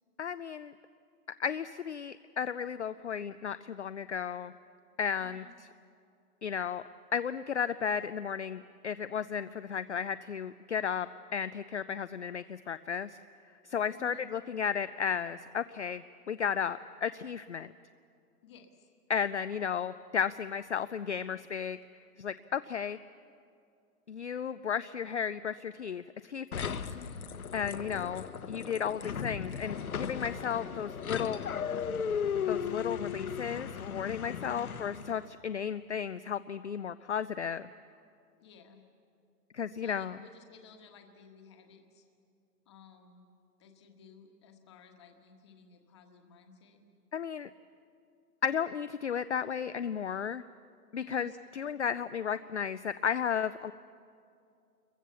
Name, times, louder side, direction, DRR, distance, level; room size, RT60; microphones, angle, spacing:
voice 1, 0.2-0.7 1.4-4.5 5.0-5.7 6.4-6.8 7.1-13.2 13.6-17.7 19.1-21.8 22.2-23.0 24.1-26.7 27.5-31.4 32.5-37.7 39.5-40.2 47.1-47.5 48.4-50.4 50.9-53.7, left 7 dB, 50° left, 13 dB, 0.5 m, -34 dB
voice 2, 5.2-5.6 13.9-14.3 18.4-18.9 26.9-27.3 34.4-34.7 38.4-38.8 39.7-42.0 42.6-43.2 43.6-46.8 50.9-51.3, left 5 dB, 20° left, 4 dB, 1.4 m, -55 dB
sound 1, 26.5-35.2, left 7 dB, 65° left, 1.4 m, -36 dB
27.0 x 22.5 x 7.0 m, 2.4 s
hypercardioid pair, 170°, 46 cm